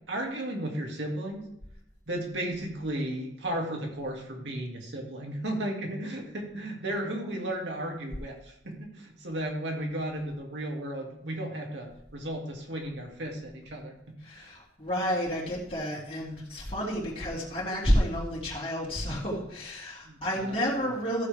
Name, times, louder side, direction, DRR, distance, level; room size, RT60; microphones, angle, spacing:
voice 1, 0.1-1.5 2.1-14.0 14.3-14.5 16.3-17.0 20.0-20.9, right 1 dB, 75° right, 0 dB, 2.4 m, -35 dB
voice 2, 14.2-21.3, equal, 30° left, -7 dB, 2.8 m, -30 dB
14.5 x 7.5 x 3.4 m, 0.81 s
head